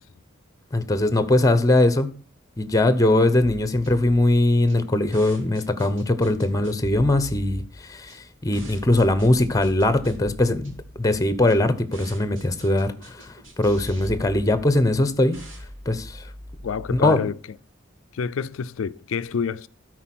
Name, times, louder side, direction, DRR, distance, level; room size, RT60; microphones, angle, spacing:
voice 1, 0.7-2.1 2.6-15.4 15.9-16.2 16.9-17.2, left 1 dB, 15° left, 0.8 m, -21 dB
sound 1, 4.6-17.0, equal, 80° right, 3.5 m, -41 dB
voice 2, 16.6-17.4 18.1-19.7, left 6 dB, 90° left, 0.4 m, -27 dB
12.5 x 4.6 x 5.9 m
head